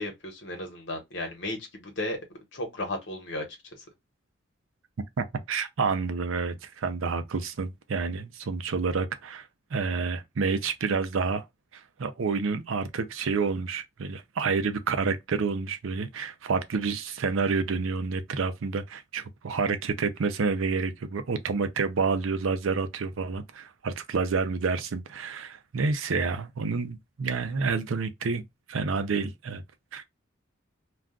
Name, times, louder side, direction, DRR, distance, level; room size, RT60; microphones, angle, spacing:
voice 1, 0.0-2.2 2.5-3.4 3.8-3.9, left 1 dB, 65° left, 1.1 m, -34 dB
voice 2, 5.2-11.4 11.7-29.6 29.9-30.0, right 4 dB, 90° right, 0.5 m, -29 dB
2.4 x 2.3 x 3.6 m
head